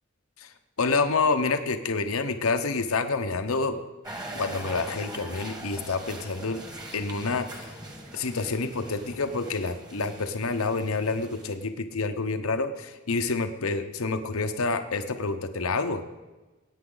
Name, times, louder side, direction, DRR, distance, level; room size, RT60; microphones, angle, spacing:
voice 1, 0.8-3.8 4.3-6.6 6.9-7.7 8.1-16.0, left 3 dB, 80° left, 8 dB, 0.9 m, -28 dB
sound 1, 4.0-11.6, right 1 dB, 20° right, 1.6 m, -42 dB
20.0 x 9.1 x 3.9 m, 1.2 s
head